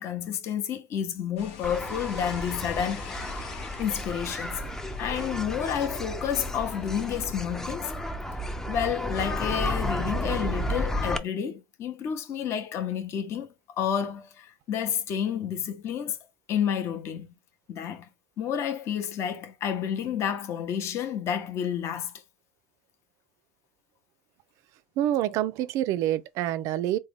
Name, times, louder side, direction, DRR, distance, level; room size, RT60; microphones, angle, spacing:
voice 1, 0.0-3.3 3.8-4.6 5.0-7.9 8.7-13.5 13.8-16.2 16.5-17.3 17.7-18.1 18.4-22.1, left 8 dB, 45° left, 0.7 m, -30 dB
sound 1, 1.4-7.4, left 6 dB, 75° left, 0.8 m, -44 dB
sound 2, 1.6-11.2, left 1 dB, 5° left, 0.4 m, -32 dB
voice 2, 25.0-27.0, right 12 dB, 55° right, 0.4 m, -27 dB
3.6 x 2.1 x 3.4 m
supercardioid pair, 115°, 6 cm